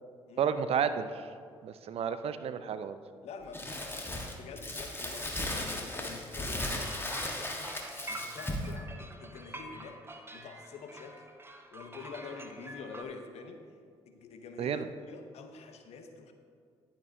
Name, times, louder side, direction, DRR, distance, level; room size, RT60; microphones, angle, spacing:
voice 1, 0.4-1.3 1.6-3.0 14.6-14.9, right 7 dB, 55° right, 12 dB, 0.5 m, -31 dB
voice 2, 3.2-7.8 8.1-11.2 11.7-13.7 14.1-16.3, left 4 dB, 60° left, 6 dB, 0.9 m, -47 dB
Crumpling crinkling, 3.5-8.7, left 1 dB, 20° left, 1.4 m, -36 dB
sound 1, 6.6-13.0, right 1 dB, 20° right, 0.9 m, -46 dB
10.5 x 8.7 x 2.7 m, 2.1 s
hypercardioid pair, 45°, 12 cm